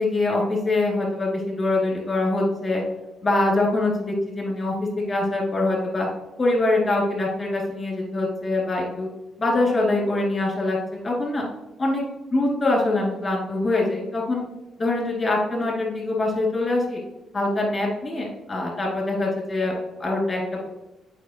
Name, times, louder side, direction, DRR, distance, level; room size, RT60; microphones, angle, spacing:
voice 1, 0.0-2.8 3.2-4.7 5.1-6.1 6.4-9.1 9.4-10.8 11.0-11.4 11.8-12.0 12.3-14.5 14.8-17.0 17.3-20.7, left 2 dB, 30° left, -2 dB, 2.2 m, -24 dB
8.3 x 4.7 x 2.8 m, 0.96 s
cardioid pair, 135°, 0 cm